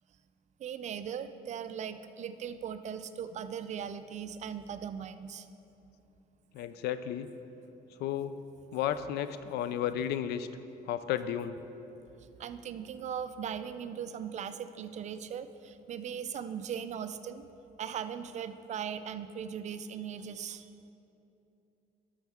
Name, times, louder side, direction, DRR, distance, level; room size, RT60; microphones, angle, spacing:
voice 1, 0.6-5.5 9.9-10.0 12.4-17.4 17.8-20.7, right 8 dB, 45° right, 11 dB, 0.4 m, -39 dB
voice 2, 6.5-7.3 8.0-8.4 8.7-10.5 10.9-11.6, left 10 dB, 75° left, 12 dB, 0.4 m, -33 dB
12.0 x 6.3 x 3.6 m, 2.9 s
cardioid pair, 110°, 17 cm